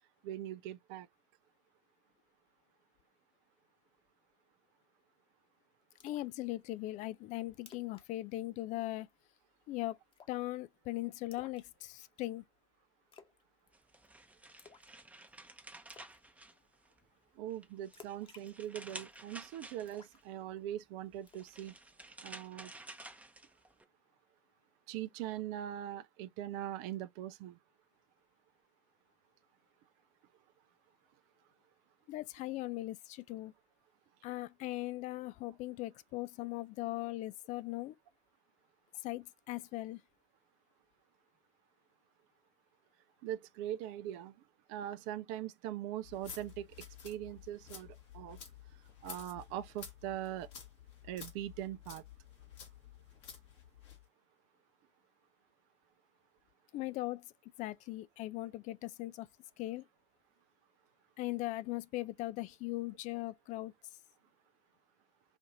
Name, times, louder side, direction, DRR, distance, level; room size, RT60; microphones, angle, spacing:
voice 1, 0.2-1.1 17.4-21.7 22.2-22.7 24.9-27.6 43.2-44.3 44.7-46.7 47.0-48.4 49.0-50.5 51.0-52.0, right 12 dB, 60° right, 0.4 m, -41 dB
voice 2, 6.0-9.1 9.7-10.0 10.3-12.4 32.1-33.5 34.2-37.9 39.0-40.0 56.7-57.3 57.6-59.3 59.6-59.9 61.2-63.7, left 17 dB, 50° left, 0.4 m, -39 dB
Splash splatter, 6.0-6.3 6.7-6.8 7.2-7.3 7.6-8.1 8.3-8.5 8.8-9.2 10.1-10.5 11.3-12.2 13.1-13.4 13.7-14.1 14.6-15.0 15.3-15.4 15.9-16.2 17.9-19.2 19.9-20.8 21.3-21.5, left 5 dB, 35° left, 1.0 m, -57 dB
sound 1, 13.7-17.1 17.5-20.2 21.1-23.8, right 2 dB, 10° right, 0.7 m, -52 dB
sound 2, 46.0-54.0, left 7 dB, 70° left, 1.3 m, -52 dB
5.1 x 2.5 x 2.6 m
figure-of-eight pair, 55°, 15 cm